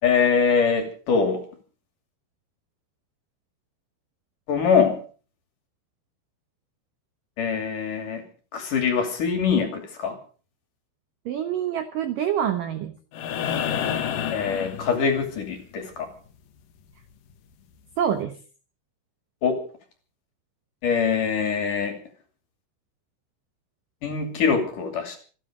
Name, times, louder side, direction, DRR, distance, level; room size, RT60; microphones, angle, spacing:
voice 1, 0.0-1.4 4.5-5.0 7.4-8.2 8.5-10.2 14.3-16.1 19.4-19.6 20.8-22.0 24.0-25.2, left 6 dB, 45° left, 5 dB, 3.7 m, -23 dB
voice 2, 11.3-13.0 18.0-18.4, right 9 dB, 80° right, 8 dB, 1.9 m, -26 dB
sound 1, 13.1-15.4 17.3-17.4, left 9 dB, 70° left, 2.1 m, -29 dB
27.5 x 9.8 x 5.1 m, 0.40 s
omnidirectional pair, 5.7 m